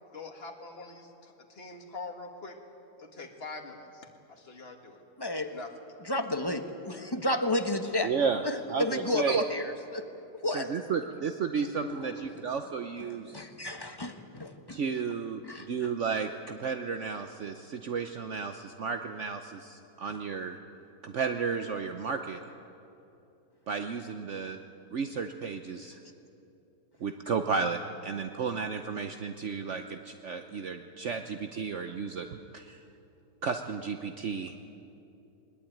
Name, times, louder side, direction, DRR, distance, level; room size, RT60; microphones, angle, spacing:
voice 1, 0.1-2.6 3.0-5.0 5.5-5.7, left 3 dB, 40° left, 3 dB, 2.3 m, -44 dB
voice 2, 5.2-5.5 6.0-8.1 8.4-10.1 10.4-10.7 11.9-12.5 13.3-14.8 15.4-15.9, left 1 dB, 15° left, 6 dB, 1.1 m, -32 dB
voice 3, 8.0-8.4 8.7-9.4 10.5-13.4 14.7-15.4 15.7-20.6 21.0-22.4 23.7-24.6 24.9-26.0 27.0-32.8 33.4-34.5, right 5 dB, 55° right, 7 dB, 1.1 m, -33 dB
21.0 x 20.5 x 9.3 m, 2.8 s
omnidirectional pair, 1.6 m